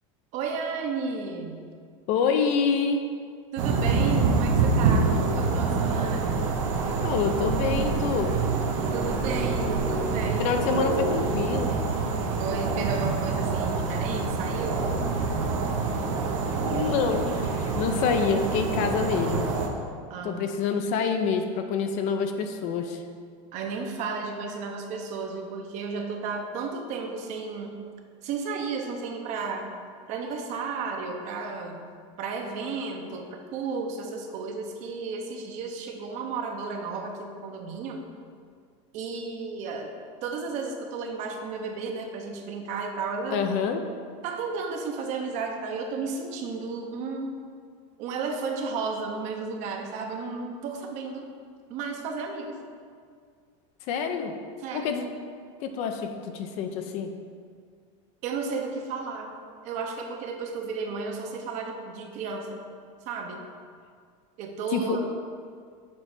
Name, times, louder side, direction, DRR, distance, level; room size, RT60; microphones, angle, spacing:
voice 1, 0.3-1.6 3.5-6.4 7.0-7.1 8.9-10.5 12.4-14.8 20.1-20.4 23.5-27.7 28.2-29.7 30.1-31.8 32.2-38.0 38.9-39.9 40.2-43.5 44.2-47.3 48.0-51.3 51.7-52.6 54.6-54.9 58.2-59.3 59.6-62.6 63.0-63.5 64.4-65.0, right 4 dB, 45° right, 3 dB, 0.8 m, -33 dB
voice 2, 2.1-3.0 7.0-8.3 10.4-11.8 16.6-19.5 20.2-23.0 43.3-43.8 53.9-54.3 54.7-55.1 55.6-57.1 64.7-65.0, left 6 dB, 45° left, 6 dB, 0.5 m, -27 dB
sound 1, 3.6-19.7, right 4 dB, 75° right, 0.9 m, -26 dB
7.4 x 3.3 x 5.9 m, 2.1 s
supercardioid pair, 150°, 17 cm